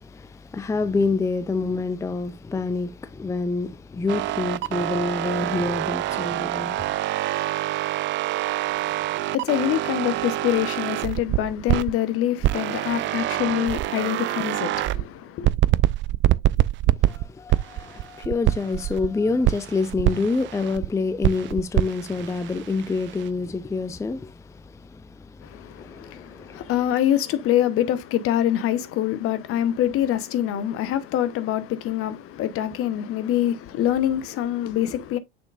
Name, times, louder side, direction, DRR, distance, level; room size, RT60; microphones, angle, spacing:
voice 1, 0.0-7.0 17.0-26.7, left 3 dB, 10° left, 0.5 m, -27 dB
sound 1, 4.1-11.9 12.4-15.0 15.4-19.1 19.4-20.9 21.2-23.3, right 15 dB, 40° right, 0.5 m, -25 dB
voice 2, 8.7-15.5 25.4-35.2, left 11 dB, 50° left, 1.0 m, -25 dB
6.9 x 6.1 x 2.5 m
hypercardioid pair, 70°, 29 cm